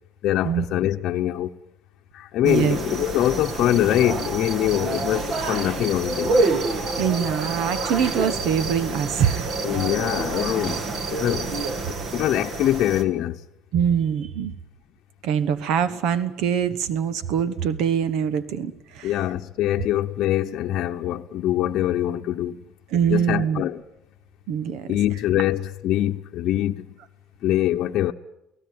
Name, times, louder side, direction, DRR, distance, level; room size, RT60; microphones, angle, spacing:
voice 1, 0.2-1.5 2.1-6.3 9.6-10.8 11.1-11.5 11.9-13.4 19.0-22.6 23.1-23.8 24.9-26.9 27.4-28.1, left 13 dB, 60° left, 0.9 m, -23 dB
sound 1, 2.4-13.0, right 3 dB, 40° right, 2.2 m, -27 dB
voice 2, 2.4-2.8 7.0-9.5 13.7-14.5 15.2-19.2 22.9-23.6 24.5-24.9, right 8 dB, 70° right, 1.2 m, -23 dB
30.0 x 18.5 x 9.5 m
cardioid pair, 155°, 0 cm